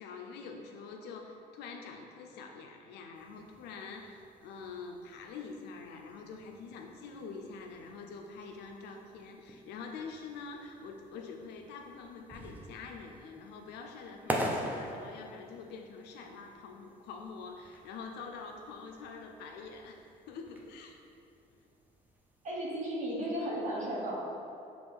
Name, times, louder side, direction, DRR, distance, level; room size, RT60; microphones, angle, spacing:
voice 1, 0.0-21.0, left 4 dB, 80° left, 2 dB, 0.4 m, -46 dB
sound 1, 3.1-22.5, equal, 10° right, 0.5 m, -45 dB
voice 2, 22.4-24.1, right 1 dB, 45° right, -5 dB, 1.0 m, -34 dB
5.0 x 3.0 x 3.5 m, 2.6 s
cardioid pair, 110°, 17 cm